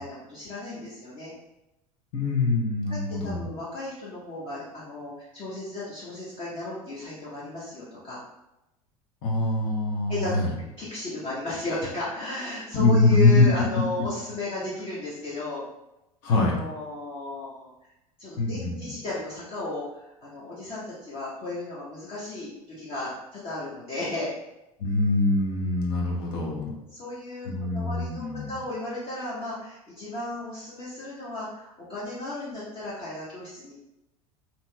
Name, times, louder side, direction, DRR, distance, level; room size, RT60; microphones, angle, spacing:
voice 1, 0.0-1.3 2.9-8.2 10.1-10.3 10.8-15.6 16.3-17.9 18.2-24.3 26.9-33.7, left 2 dB, 30° left, -9 dB, 0.8 m, -35 dB
voice 2, 2.1-3.4 9.2-10.5 12.7-13.5 16.2-16.6 18.4-18.9 24.8-26.7 27.5-28.5, left 2 dB, 55° left, -1 dB, 0.9 m, -23 dB
2.8 x 2.8 x 2.2 m, 0.93 s
figure-of-eight pair, 80°, 19 cm